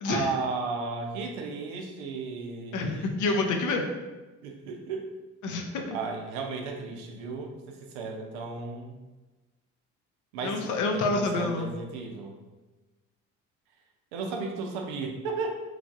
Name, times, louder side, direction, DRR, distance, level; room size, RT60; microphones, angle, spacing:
voice 1, 0.0-3.1 4.4-5.1 5.9-9.0 10.3-12.3 14.1-15.6, right 4 dB, 80° right, 2 dB, 0.5 m, -34 dB
voice 2, 2.7-3.8 5.4-6.0 10.4-11.7, left 3 dB, 55° left, 3 dB, 0.6 m, -28 dB
3.1 x 2.5 x 2.4 m, 1.2 s
hypercardioid pair, 55°, 35 cm